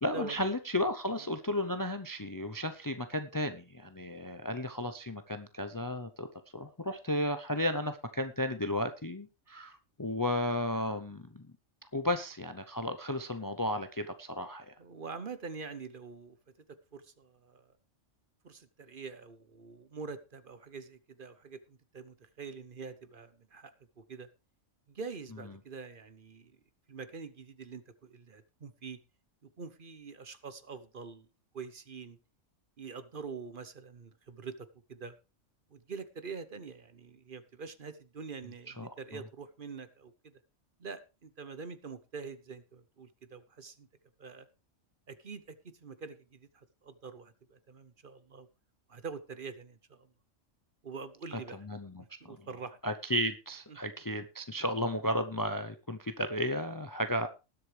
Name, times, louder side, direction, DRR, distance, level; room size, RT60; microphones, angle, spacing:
voice 1, 0.0-6.3 6.5-11.5 11.9-14.7 38.8-39.2 51.3-52.5 52.8-57.3, left 1 dB, 20° left, 9 dB, 0.5 m, -34 dB
voice 2, 14.8-16.4 16.7-17.7 18.4-24.3 24.9-26.6 26.9-29.0 29.4-31.3 31.5-32.2 32.8-35.1 35.7-40.3 40.8-43.9 44.2-44.5 45.1-48.5 48.9-50.1 50.8-51.6 52.2-52.8, right 5 dB, 45° right, 13 dB, 1.0 m, -45 dB
19.5 x 8.0 x 3.3 m, 0.29 s
omnidirectional pair, 1.3 m